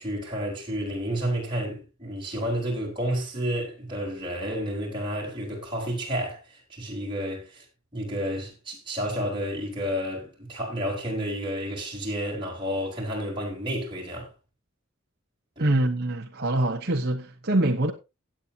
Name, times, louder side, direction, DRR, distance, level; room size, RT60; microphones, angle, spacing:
voice 1, 0.0-7.6 7.9-14.3 15.6-15.7, equal, 25° right, 4.3 m, -31 dB
voice 2, 15.6-17.9, right 1 dB, 50° right, 1.1 m, -24 dB
16.5 x 8.8 x 2.9 m
head